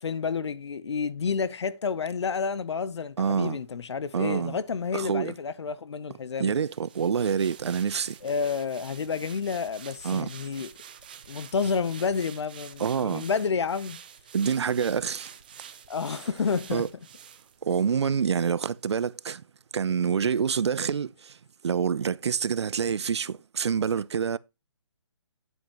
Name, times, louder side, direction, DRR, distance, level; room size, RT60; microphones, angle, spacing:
voice 1, 0.0-6.5 8.2-10.7 11.3-14.0 15.9-16.8, left 5 dB, 70° left, 0.8 m, -30 dB
voice 2, 3.2-3.6 4.1-4.6 4.9-5.3 6.4-8.2 10.0-10.3 12.8-13.2 14.3-15.3 16.7-16.9 17.6-19.4 19.7-21.4 21.6-24.4, right 7 dB, 70° right, 0.6 m, -27 dB
sound 1, 6.6-18.1 18.5-18.6, right 8 dB, 20° right, 0.5 m, -48 dB
9.2 x 8.1 x 3.0 m
hypercardioid pair, 175°, 15 cm